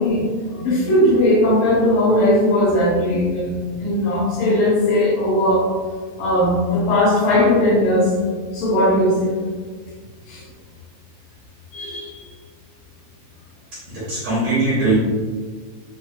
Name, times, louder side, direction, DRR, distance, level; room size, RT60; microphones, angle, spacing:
voice 1, 0.0-5.7 6.2-8.1 8.5-9.3 10.3-10.4 11.7-12.2, left 1 dB, 75° left, -5 dB, 2.2 m, -18 dB
voice 2, 13.9-14.9, right 3 dB, 70° right, -9 dB, 1.7 m, -20 dB
5.5 x 2.2 x 2.2 m, 1.6 s
omnidirectional pair, 4.1 m